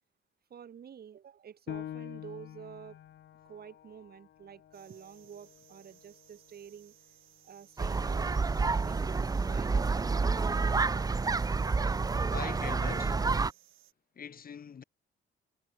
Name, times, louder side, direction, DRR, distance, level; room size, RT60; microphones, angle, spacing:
voice 1, 0.5-3.0 3.4-7.0 7.4-8.3 8.6-9.2 9.5-11.1, right 8 dB, 50° right, 2.0 m, -49 dB
Piano, 1.7-6.8 7.3-7.4 8.0-8.5, left 11 dB, 65° left, 1.3 m, -47 dB
sound 1, 4.7-13.9, right 15 dB, 90° right, 3.4 m, -62 dB
sound 2, 7.8-13.5, right 4 dB, 20° right, 0.5 m, -29 dB
voice 2, 12.3-13.3 14.2-14.8, left 7 dB, 45° left, 2.8 m, -42 dB
cardioid pair, 90°, 20 cm